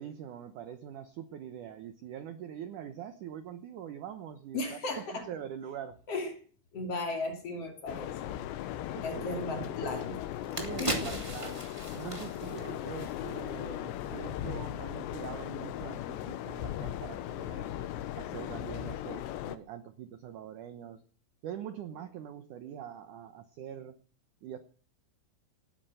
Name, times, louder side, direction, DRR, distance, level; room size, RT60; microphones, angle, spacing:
voice 1, 0.0-6.0 8.9-9.5 10.5-11.6 11.9-17.7 18.2-21.0 21.4-24.0 24.4-24.6, right 9 dB, 85° right, 10 dB, 1.7 m, -43 dB
voice 2, 4.5-5.3 6.1-6.3 6.7-8.4 9.0-10.2 10.8-11.3, left 2 dB, 40° left, 4 dB, 3.3 m, -36 dB
sound 1, 7.9-19.6, left 12 dB, 80° left, 3.2 m, -38 dB
sound 2, 9.9-10.0 10.3-13.6 13.9-14.1, right 1 dB, 10° right, 1.9 m, -38 dB
18.0 x 10.0 x 7.8 m, 0.42 s
omnidirectional pair, 5.2 m